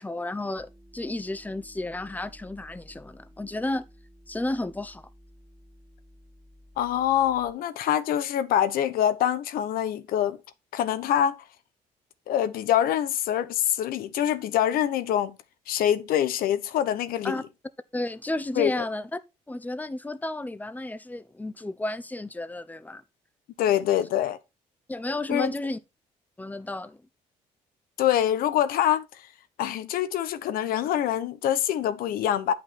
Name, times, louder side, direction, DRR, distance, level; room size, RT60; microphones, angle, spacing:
voice 1, 0.0-3.8 4.3-5.1 17.2-17.4 17.9-19.2 19.5-23.0 24.9-25.8 26.4-27.0, left 2 dB, 10° left, 0.9 m, -32 dB
sound 1, 0.6-7.5, equal, 15° right, 1.4 m, -53 dB
voice 2, 6.8-10.4 10.7-11.4 12.3-15.4 15.7-17.4 18.6-18.8 23.6-24.4 25.3-25.5 28.0-29.0 29.6-32.5, left 10 dB, 80° left, 0.9 m, -25 dB
8.7 x 5.6 x 4.3 m
supercardioid pair, 70°, 15 cm